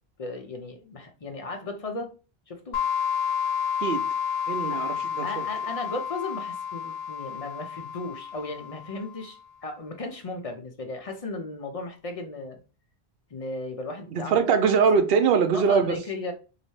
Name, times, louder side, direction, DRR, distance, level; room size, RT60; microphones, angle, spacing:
voice 1, 0.2-2.1 2.5-2.8 4.7-4.8 5.2-12.6 13.3-14.4 14.6-14.8 15.5-16.3, left 2 dB, 45° left, 0.5 m, -36 dB
sound 1, 2.7-9.2, left 7 dB, 75° left, 0.9 m, -30 dB
voice 2, 4.5-5.4 14.1-16.0, right 6 dB, 65° right, 0.8 m, -22 dB
3.2 x 2.8 x 3.0 m
omnidirectional pair, 1.1 m